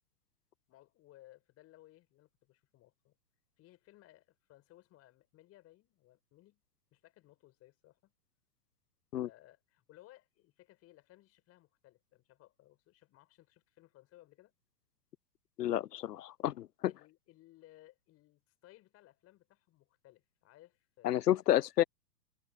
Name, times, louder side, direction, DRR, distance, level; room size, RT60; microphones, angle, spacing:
voice 1, 0.7-3.1 3.6-6.6 6.9-8.1 9.2-14.5 16.9-21.2, left 16 dB, 30° left, 4.7 m, -61 dB
voice 2, 15.6-16.9 21.0-21.8, left 12 dB, 75° left, 0.7 m, -30 dB
hypercardioid pair, 115°, 48 cm